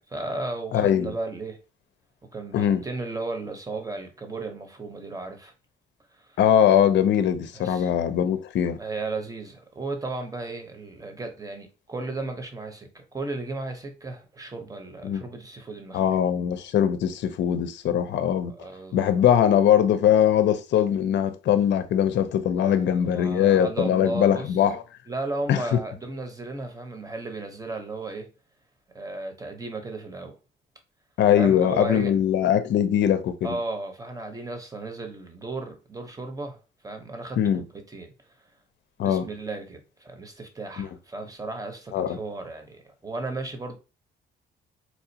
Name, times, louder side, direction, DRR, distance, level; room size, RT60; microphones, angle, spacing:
voice 1, 0.0-1.6 2.3-5.5 6.1-6.4 7.5-7.9 8.8-16.2 18.5-19.1 22.6-24.6 25.1-28.3 28.9-30.4 31.4-32.1 33.4-36.6 36.8-37.4 37.7-38.1 39.0-43.8, right 2 dB, 15° right, 0.9 m, -35 dB
voice 2, 0.7-1.1 2.5-2.8 6.4-8.8 15.0-15.2 15.9-18.5 18.9-24.8 25.5-25.8 31.2-33.6 37.4-37.6 39.0-39.3 40.8-40.9 41.9-42.2, left 9 dB, 65° left, 0.5 m, -21 dB
4.3 x 2.4 x 2.8 m
cardioid pair, 90°, 20 cm